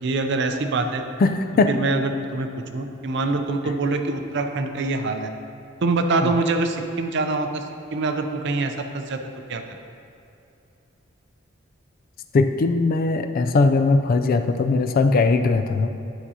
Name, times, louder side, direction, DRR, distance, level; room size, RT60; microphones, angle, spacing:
voice 1, 0.0-1.0 1.7-2.5 2.7-5.3 5.8-7.6 7.9-9.2 9.5-9.6, right 3 dB, 60° right, 6 dB, 0.5 m, -24 dB
voice 2, 1.2-1.7 3.6-3.7 6.2-6.3 12.3-15.9, left 3 dB, 45° left, 8 dB, 0.3 m, -20 dB
10.0 x 6.0 x 2.8 m, 2.6 s
head